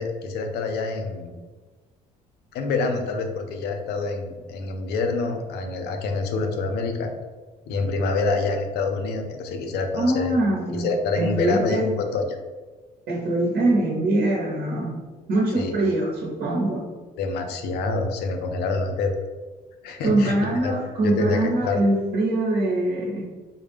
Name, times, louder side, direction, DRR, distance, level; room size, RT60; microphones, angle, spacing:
voice 1, 0.0-1.3 2.5-7.1 7.7-10.3 10.7-12.3 15.6-15.7 17.2-19.1 19.8-20.3 20.6-20.7 21.0-21.8, left 3 dB, 75° left, 5 dB, 0.5 m, -26 dB
voice 2, 10.0-10.9 11.1-11.9 13.1-15.0 15.3-16.9 20.0-23.3, right 2 dB, 65° right, -3 dB, 0.9 m, -23 dB
3.6 x 2.1 x 3.4 m, 1.3 s
cardioid pair, 110°, 17 cm